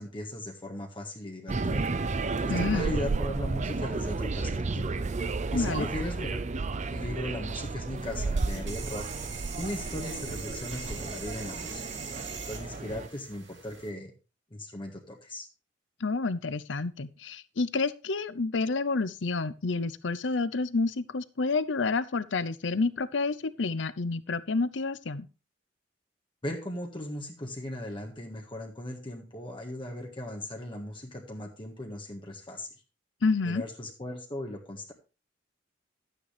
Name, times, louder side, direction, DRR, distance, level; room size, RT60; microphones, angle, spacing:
voice 1, 0.0-1.8 2.4-4.9 5.5-6.4 6.9-9.1 9.5-12.0 12.4-14.1 14.5-15.5 26.4-32.7 33.4-34.9, left 1 dB, 30° left, 0 dB, 1.6 m, -38 dB
sound 1, 1.5-13.1, right 3 dB, 40° right, 0.5 m, -32 dB
voice 2, 2.5-2.9 5.5-5.9 16.0-25.3 33.2-33.6, left 3 dB, 80° left, 15 dB, 0.7 m, -29 dB
sound 2, 7.9-13.9, right 6 dB, 75° right, 3.2 m, -42 dB
12.5 x 9.2 x 3.4 m, 0.32 s
head